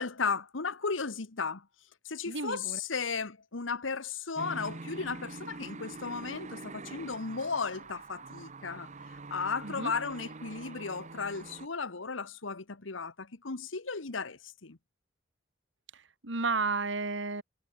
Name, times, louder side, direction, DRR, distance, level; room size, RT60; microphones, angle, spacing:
voice 1, 0.0-1.7 2.0-14.8, left 5 dB, 85° left, 1.4 m, -35 dB
voice 2, 2.3-2.8 9.6-9.9 15.9-17.4, right 4 dB, 70° right, 2.7 m, -33 dB
sound 1, 4.3-11.7, right 3 dB, 40° right, 1.1 m, -45 dB
head